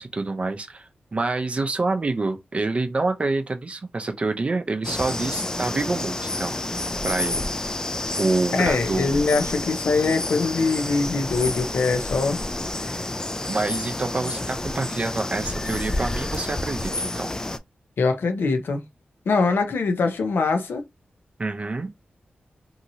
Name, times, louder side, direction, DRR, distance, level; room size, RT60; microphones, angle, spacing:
voice 1, 0.0-6.6 7.0-7.4 8.2-9.2 13.5-17.3 21.4-21.9, right 3 dB, 35° right, 0.5 m, -27 dB
sound 1, 4.8-17.6, left 2 dB, 20° left, 0.3 m, -29 dB
voice 2, 8.5-12.4 18.0-18.8 19.3-20.8, left 4 dB, 80° left, 0.7 m, -23 dB
2.7 x 2.7 x 2.7 m
wide cardioid pair, 105°, 4 cm